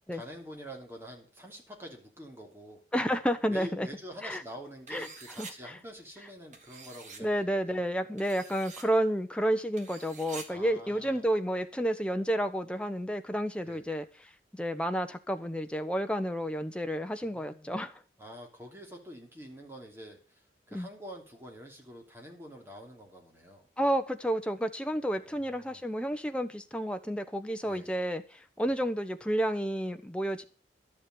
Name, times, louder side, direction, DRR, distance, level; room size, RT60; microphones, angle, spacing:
voice 1, 0.1-2.8 3.5-7.8 10.5-11.3 13.6-13.9 17.2-17.8 18.2-23.7 25.1-25.8 27.6-27.9, equal, 15° right, 1 dB, 3.1 m, -47 dB
voice 2, 2.9-3.9 4.2-4.4 4.9-5.1 5.4-5.8 7.2-14.0 14.5-18.0 20.7-20.9 23.8-30.4, equal, 5° left, 7 dB, 0.9 m, -31 dB
sound 1, 4.9-5.5 6.5-7.2 8.2-8.8 9.8-10.5, right 4 dB, 45° right, 2.2 m, -46 dB
12.0 x 7.4 x 7.7 m, 0.36 s
head